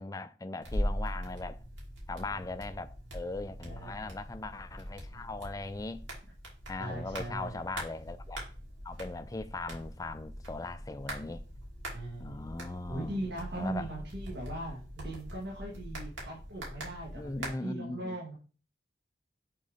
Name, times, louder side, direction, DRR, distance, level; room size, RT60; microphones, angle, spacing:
voice 1, 0.0-1.6 2.1-6.0 6.7-8.4 8.8-11.4 12.2-13.2 13.5-13.9 17.2-18.2, left 2 dB, 20° left, 0.4 m, -39 dB
sound 1, 0.6-17.5, equal, 90° right, 2.8 m, -41 dB
voice 2, 3.6-4.0 5.1-5.3 6.7-7.7 11.9-12.5 12.9-18.3, right 1 dB, 70° right, 1.7 m, -40 dB
6.6 x 3.8 x 5.0 m
head